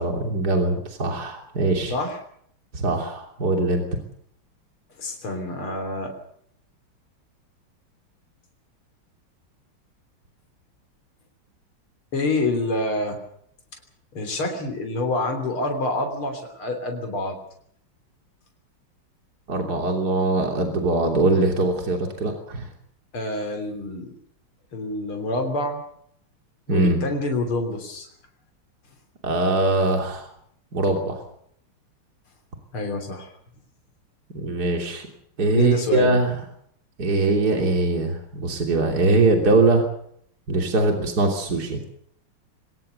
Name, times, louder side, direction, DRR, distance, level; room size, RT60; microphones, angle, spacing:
voice 1, 0.0-1.9 2.7-3.8 19.5-22.7 26.7-27.0 29.2-30.3 30.7-31.2 34.3-35.1 35.4-36.3 37.0-39.8 40.5-41.8, right 2 dB, 45° right, 2 dB, 3.7 m, -22 dB
voice 2, 5.0-6.1 12.1-13.2 14.1-17.4 23.1-24.1 24.7-25.8 26.7-28.1 32.7-33.3 35.5-36.2, left 2 dB, 80° left, 4 dB, 4.3 m, -27 dB
23.5 x 18.5 x 6.9 m, 0.67 s
omnidirectional pair, 2.3 m